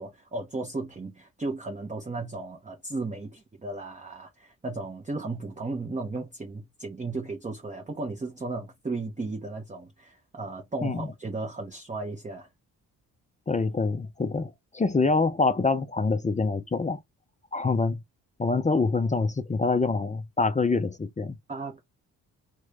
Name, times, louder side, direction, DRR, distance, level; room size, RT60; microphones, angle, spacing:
voice 1, 0.0-12.5 21.5-21.8, right 3 dB, 15° right, 0.8 m, -35 dB
voice 2, 13.5-17.0 17.5-18.0 18.4-21.4, left 3 dB, 15° left, 0.4 m, -25 dB
3.0 x 2.3 x 3.7 m
hypercardioid pair, 45°, 46 cm